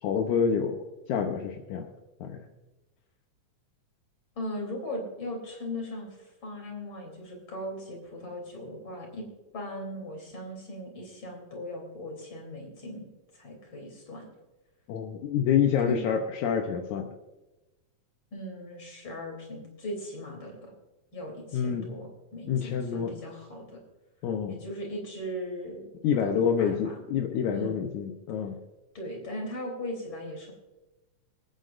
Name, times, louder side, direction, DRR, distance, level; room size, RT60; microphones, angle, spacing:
voice 1, 0.0-1.9 2.2-2.4 14.9-17.1 21.5-21.9 22.5-23.2 24.2-24.5 26.0-28.6, left 7 dB, 80° left, 3 dB, 2.3 m, -27 dB
voice 2, 4.4-9.3 9.5-13.1 13.3-14.3 15.8-16.0 18.3-20.7 21.1-23.8 24.5-25.9 26.2-27.0 27.5-27.9 28.9-30.5, left 1 dB, 40° left, 1 dB, 4.0 m, -38 dB
24.5 x 9.1 x 2.6 m, 1.1 s
omnidirectional pair, 3.4 m